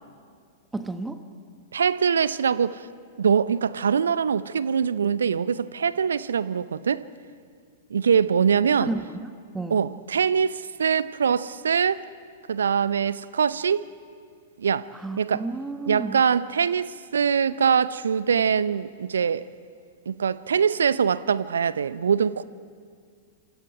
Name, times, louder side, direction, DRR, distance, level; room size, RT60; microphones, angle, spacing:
voice 1, 0.7-1.2 8.8-9.8 14.9-16.2, right 3 dB, 10° right, 1.1 m, -32 dB
voice 2, 1.7-2.9 3.2-7.0 7.9-8.9 9.7-12.0 12.5-13.9 14.6-14.9 15.2-15.4 15.9-19.4 20.1-22.4, right 7 dB, 70° right, 0.6 m, -23 dB
28.0 x 24.0 x 4.9 m
figure-of-eight pair, 100°, 0 cm